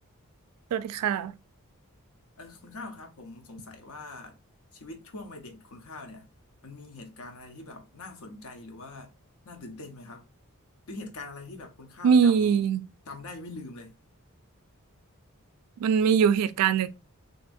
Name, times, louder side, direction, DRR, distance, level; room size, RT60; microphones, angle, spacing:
voice 1, 0.7-1.3 12.0-12.8 15.8-16.9, right 7 dB, 90° right, 0.3 m, -22 dB
voice 2, 2.4-4.4 4.7-6.3 6.6-9.1 9.4-10.3 10.9-12.6 13.1-13.9, left 2 dB, 75° left, 0.7 m, -43 dB
2.8 x 2.6 x 2.4 m
head